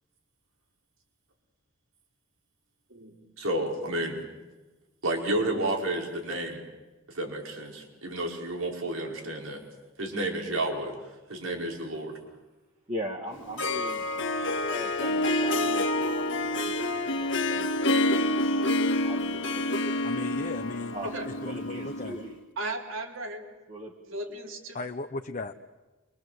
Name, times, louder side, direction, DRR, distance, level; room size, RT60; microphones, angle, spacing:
voice 1, 3.4-4.2 5.0-6.6 7.1-9.6 10.0-10.9 11.3-12.2, right 1 dB, 90° right, 1 dB, 5.6 m, -31 dB
voice 2, 12.9-14.1 14.5-19.9 20.9-21.2 21.5-22.4 23.7-24.4, equal, 35° right, -1 dB, 2.1 m, -40 dB
Harp, 13.3-22.3, left 1 dB, 65° left, 1.8 m, -28 dB
voice 3, 20.0-21.0 21.3-22.2 24.7-25.5, left 2 dB, 40° left, 5 dB, 1.0 m, -36 dB
voice 4, 22.6-23.4 24.1-24.8, right 2 dB, 70° right, 3 dB, 3.9 m, -36 dB
28.5 x 24.5 x 8.0 m, 1.2 s
head